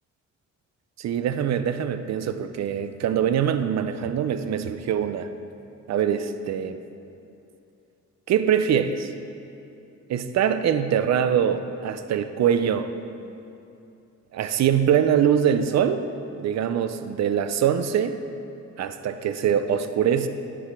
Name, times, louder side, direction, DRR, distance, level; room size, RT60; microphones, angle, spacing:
voice 1, 1.0-5.3 5.9-6.8 8.3-9.1 10.1-12.9 14.3-16.1 16.4-18.1 18.8-20.3, right 8 dB, 65° right, 10 dB, 0.5 m, -23 dB
9.9 x 4.9 x 5.8 m, 2.8 s
wide cardioid pair, 140°, 30 cm